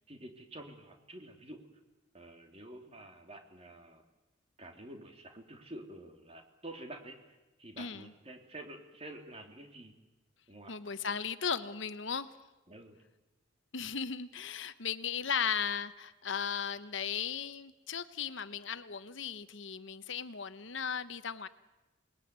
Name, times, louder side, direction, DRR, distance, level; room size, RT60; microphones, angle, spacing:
voice 1, 0.1-1.6 2.1-4.0 4.6-9.9 10.5-10.7 12.7-13.0, right 1 dB, 30° right, 4 dB, 3.2 m, -49 dB
voice 2, 7.8-8.1 10.7-12.3 13.7-21.5, left 7 dB, 65° left, 12 dB, 1.0 m, -36 dB
28.0 x 20.5 x 9.5 m, 1.1 s
head